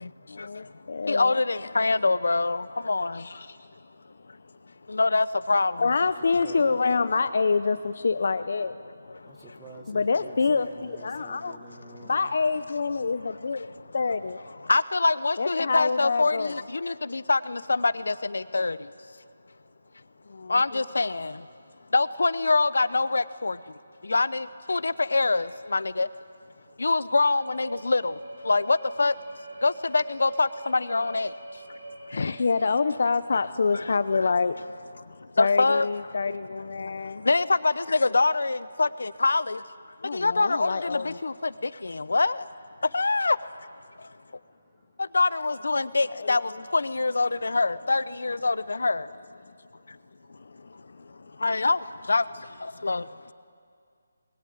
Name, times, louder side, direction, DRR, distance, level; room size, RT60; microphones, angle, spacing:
voice 1, 0.3-1.3 3.2-3.6 5.8-8.7 9.9-11.6 12.1-13.6 13.9-14.4 15.4-16.5 20.3-20.8 32.1-34.6 35.4-37.3 40.0-41.2 46.1-46.3, left 4 dB, 45° left, 13 dB, 0.6 m, -26 dB
voice 2, 1.1-3.2 4.9-5.9 14.7-18.8 20.5-21.3 21.9-23.5 24.1-26.1 26.8-28.1 28.5-29.1 29.6-31.3 33.7-33.8 35.4-35.9 37.3-39.6 40.1-41.3 41.8-42.4 42.9-43.4 45.1-46.4 46.7-49.0 51.4-51.8 52.1-52.2 52.8-53.0, left 3 dB, 75° left, 16 dB, 0.9 m, -24 dB
voice 3, 6.0-6.8 9.2-12.3 24.0-24.1 37.2-37.3, right 3 dB, 5° right, 2 dB, 1.3 m, -48 dB
sound 1, 27.2-32.4, right 2 dB, 60° right, 7.8 m, -42 dB
26.0 x 22.0 x 9.3 m, 2.3 s
hypercardioid pair, 180°, 0 cm